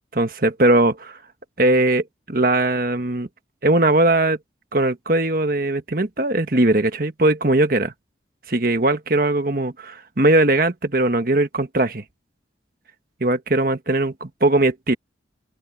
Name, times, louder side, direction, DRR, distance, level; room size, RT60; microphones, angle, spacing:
voice 1, 0.1-1.2 1.6-3.3 3.6-4.4 4.7-7.9 8.5-12.0 13.2-14.9, right 2 dB, 50° right, 1.5 m, -19 dB
open air
head